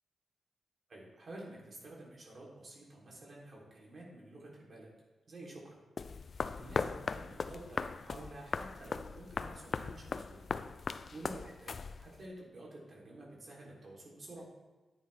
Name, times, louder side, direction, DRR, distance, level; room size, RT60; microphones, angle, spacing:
voice 1, 0.9-4.9 5.3-5.8 6.3-10.4 11.1-14.5, right 1 dB, 45° right, -3 dB, 3.5 m, -50 dB
sound 1, 6.0-12.3, left 5 dB, 50° left, 0.4 m, -39 dB
10.5 x 9.2 x 3.5 m, 1.2 s
cardioid pair, 100°, 0 cm